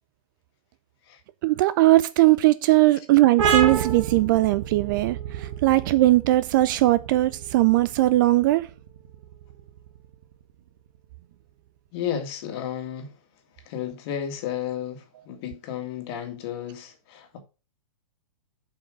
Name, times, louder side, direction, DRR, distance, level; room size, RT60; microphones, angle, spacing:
voice 1, 1.4-8.7, right 17 dB, 35° right, 0.4 m, -19 dB
sound 1, 3.4-10.7, right 7 dB, 55° right, 1.9 m, -30 dB
voice 2, 11.9-13.1 13.7-17.4, left 9 dB, 40° left, 2.0 m, -33 dB
7.4 x 5.4 x 5.2 m
figure-of-eight pair, 115°, 19 cm